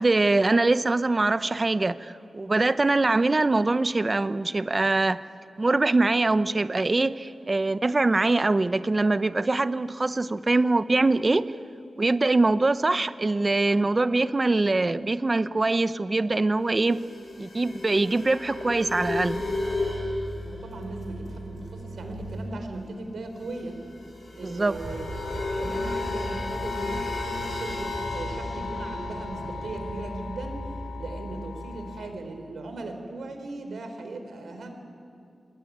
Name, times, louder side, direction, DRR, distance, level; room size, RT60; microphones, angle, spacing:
voice 1, 0.0-5.2 5.6-11.5 12.0-17.0 17.4-19.4 24.4-24.8, right 2 dB, 30° right, 14 dB, 0.7 m, -23 dB
sound 1, 16.8-22.6 22.8-22.9 23.1-32.1, left 2 dB, 50° left, 6.5 m, -34 dB
voice 2, 20.4-23.8 24.3-25.2 25.6-30.7 31.0-34.7, right 2 dB, 90° right, 6 dB, 3.9 m, -38 dB
sound 2, 24.7-31.3, right 2 dB, 70° right, 5.4 m, -39 dB
27.0 x 20.5 x 9.5 m, 2.5 s
wide cardioid pair, 120°, 0 cm